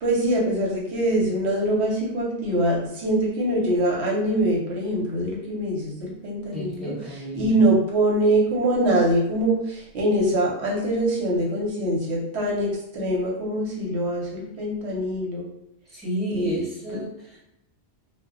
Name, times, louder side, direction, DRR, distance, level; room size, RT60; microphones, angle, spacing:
voice 1, 0.0-15.5 16.3-16.6, right 1 dB, 75° right, -2 dB, 1.0 m, -24 dB
voice 2, 6.5-7.5 15.9-17.4, equal, ahead, -7 dB, 0.9 m, -31 dB
2.1 x 2.1 x 3.7 m, 0.83 s
omnidirectional pair, 1.1 m